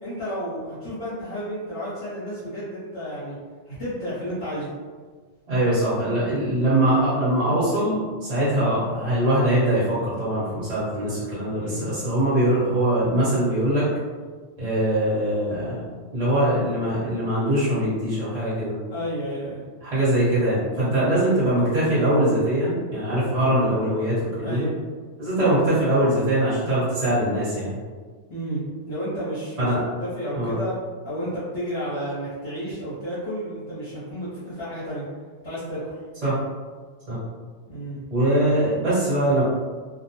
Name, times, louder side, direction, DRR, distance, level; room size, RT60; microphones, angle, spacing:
voice 1, 0.0-3.4 3.7-4.7 11.5-11.9 18.9-19.6 20.8-21.0 24.4-24.7 26.6-26.7 28.3-29.7 30.0-30.7 31.0-35.1 35.4-36.0 37.7-38.0, equal, 70° left, -12 dB, 1.2 m, -32 dB
voice 2, 5.5-13.9 14.6-15.8 16.1-18.7 19.8-24.7 25.2-27.8 29.6-29.8 30.3-30.5 36.2-36.4 37.1-37.2 38.1-39.4, right 1 dB, 30° right, -11 dB, 1.1 m, -22 dB
2.6 x 2.1 x 2.8 m, 1.5 s
omnidirectional pair, 1.2 m